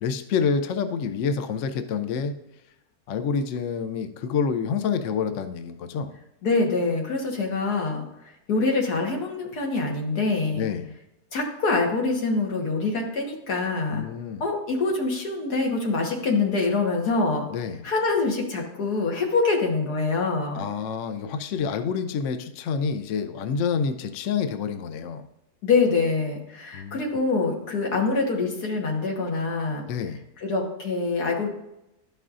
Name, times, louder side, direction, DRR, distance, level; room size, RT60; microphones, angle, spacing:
voice 1, 0.0-2.4 3.1-6.2 10.5-10.9 13.9-14.4 17.5-17.8 20.5-25.3 26.7-27.0 29.9-30.2, left 6 dB, 65° left, 9 dB, 0.8 m, -28 dB
voice 2, 6.4-8.0 8.5-10.7 11.3-14.1 14.4-17.5 17.8-20.6 25.6-29.8 30.4-31.5, left 3 dB, 85° left, 0 dB, 1.9 m, -25 dB
12.0 x 5.5 x 2.5 m, 0.87 s
omnidirectional pair, 1.6 m